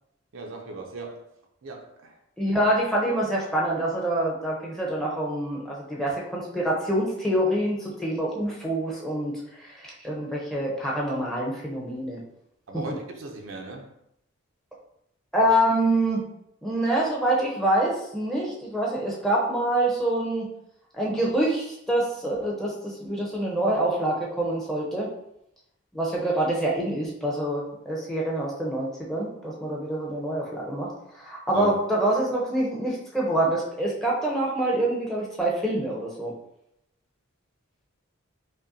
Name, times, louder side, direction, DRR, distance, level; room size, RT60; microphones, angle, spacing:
voice 1, 0.3-1.3 1.6-2.2 12.7-14.0 31.5-31.7, right 2 dB, 70° right, 2 dB, 0.5 m, -37 dB
voice 2, 2.4-12.2 15.3-16.3 16.6-20.5 20.9-25.1 25.9-30.9 31.1-36.3, right 1 dB, ahead, -4 dB, 0.7 m, -26 dB
5.1 x 2.2 x 2.6 m, 0.79 s
head